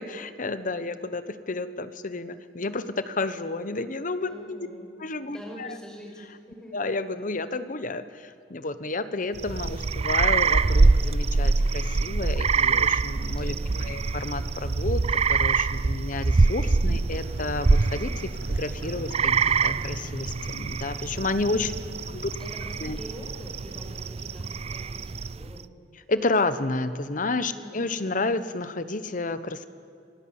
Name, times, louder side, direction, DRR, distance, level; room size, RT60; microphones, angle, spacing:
voice 1, 0.0-4.7 5.0-5.7 6.7-21.7 22.1-22.3 22.8-23.0 26.1-29.7, left 3 dB, 45° left, 12 dB, 1.0 m, -31 dB
voice 2, 4.2-4.9 5.3-6.8 13.5-14.0 21.6-22.1 22.4-25.6 27.5-27.9, equal, 5° left, -1 dB, 5.6 m, -45 dB
sound 1, 9.3-25.6, right 4 dB, 35° right, 0.5 m, -25 dB
sound 2, 16.9-23.1, right 1 dB, 85° right, 5.8 m, -49 dB
27.0 x 17.0 x 8.8 m, 2.5 s
head